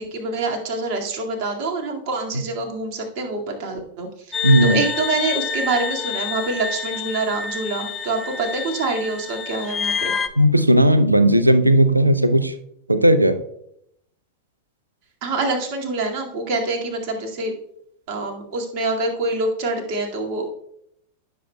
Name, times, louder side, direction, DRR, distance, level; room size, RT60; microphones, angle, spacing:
voice 1, 0.0-10.2 15.2-17.5 18.1-20.5, right 3 dB, 45° right, 1 dB, 2.0 m, -26 dB
sound 1, 4.3-10.3, left 5 dB, 20° left, 0.8 m, -28 dB
voice 2, 4.4-4.8 10.4-12.5 12.9-13.4, right 1 dB, 85° right, 12 dB, 0.6 m, -15 dB
15.5 x 7.0 x 2.3 m, 0.74 s
figure-of-eight pair, 90°, 0 cm